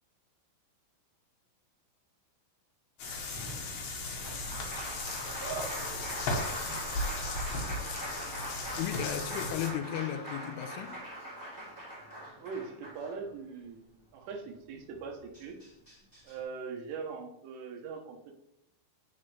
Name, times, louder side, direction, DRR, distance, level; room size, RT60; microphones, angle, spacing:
sound 1, 3.0-9.7, left 2 dB, 60° left, 2.6 m, -36 dB
Applause, 3.3-13.6 15.0-15.1 15.3-16.3, right 1 dB, 5° right, 1.9 m, -42 dB
Wind instrument woodwind instrument, 6.3-10.7, left 1 dB, 60° right, 5.3 m, -55 dB
voice 1, 8.8-11.0, left 10 dB, 85° left, 3.1 m, -35 dB
voice 2, 12.4-15.6 16.3-18.3, right 5 dB, 85° right, 3.6 m, -41 dB
14.0 x 5.1 x 3.3 m
omnidirectional pair, 5.6 m